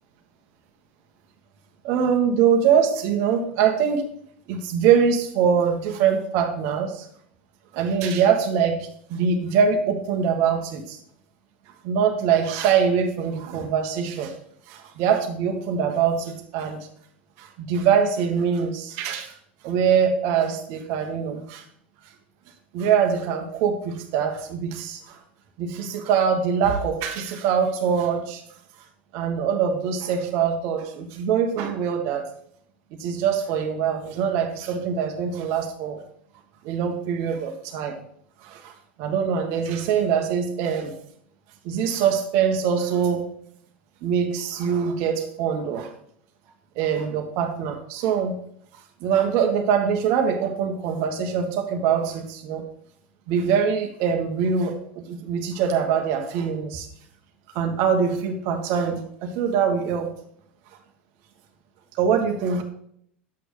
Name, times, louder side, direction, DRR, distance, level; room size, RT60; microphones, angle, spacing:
voice 1, 1.8-4.0 4.5-7.1 7.7-11.0 11.8-14.3 14.7-16.9 17.4-19.3 19.6-21.6 22.7-25.2 25.6-28.4 29.1-32.2 33.0-36.0 36.6-38.0 38.4-38.7 39.0-40.9 41.6-43.3 44.0-45.9 46.8-48.3 49.0-52.7 53.3-56.9 57.5-60.1 62.0-62.6, right 7 dB, 50° right, 4 dB, 1.2 m, -23 dB
10.5 x 8.2 x 3.2 m, 0.67 s
figure-of-eight pair, 80°, 6 cm